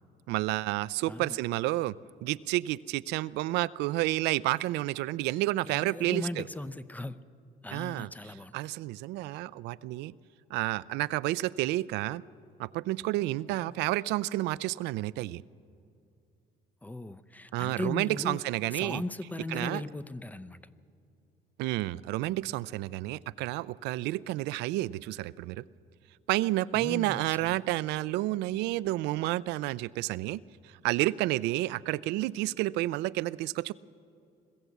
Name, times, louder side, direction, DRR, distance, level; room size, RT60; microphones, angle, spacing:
voice 1, 0.3-6.4 7.7-8.1 8.5-10.1 10.5-12.2 12.6-15.4 17.5-19.0 19.5-19.8 21.6-25.6 26.3-33.7, right 17 dB, 90° right, 18 dB, 0.4 m, -30 dB
voice 2, 1.1-1.4 5.7-7.2 7.6-8.5 16.8-18.4 18.7-20.6 26.7-27.6, left 1 dB, 10° left, 13 dB, 0.6 m, -38 dB
21.5 x 14.5 x 8.2 m, 2.5 s
cardioid pair, 110°, 17 cm